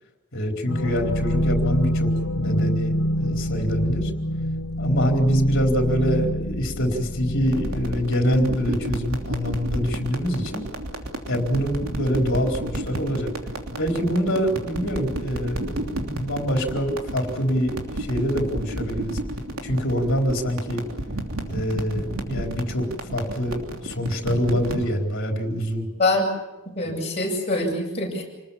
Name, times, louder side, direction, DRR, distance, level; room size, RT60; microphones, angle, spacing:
voice 1, 0.3-4.1 4.8-10.6 11.3-13.3 13.8-19.2 19.6-20.8 21.5-22.9 23.1-25.9 26.8-27.0, equal, 60° left, 2 dB, 4.3 m, -25 dB
sound 1, 0.7-8.0, equal, 90° left, 1.9 m, -26 dB
sound 2, 7.5-24.9, right 1 dB, 80° right, 3.1 m, -32 dB
voice 2, 26.7-28.2, left 2 dB, 30° left, -3 dB, 7.8 m, -24 dB
28.0 x 20.0 x 7.2 m, 1.1 s
head